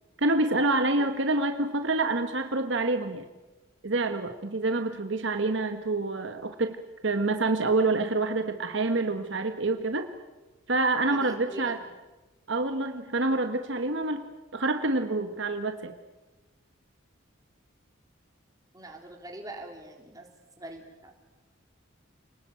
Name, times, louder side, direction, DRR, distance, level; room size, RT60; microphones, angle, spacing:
voice 1, 0.2-3.2 3.8-6.8 7.0-10.1 10.7-11.8 12.5-14.2 14.5-15.9, right 2 dB, 65° right, 7 dB, 1.5 m, -27 dB
voice 2, 11.1-11.8 18.7-20.3 20.6-21.1, right 1 dB, 15° right, 2 dB, 3.9 m, -43 dB
28.5 x 20.0 x 9.2 m, 1.2 s
head